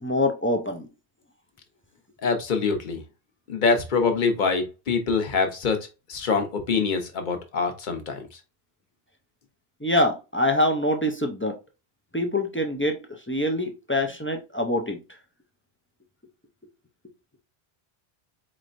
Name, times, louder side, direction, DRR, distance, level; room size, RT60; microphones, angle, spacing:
voice 1, 0.0-0.9 9.8-11.6 12.1-13.0 13.3-15.0, left 1 dB, 20° left, 0.3 m, -24 dB
voice 2, 2.2-3.0 3.5-5.8 6.1-8.2, left 4 dB, 50° left, 0.9 m, -24 dB
4.2 x 3.2 x 2.5 m
omnidirectional pair, 1.1 m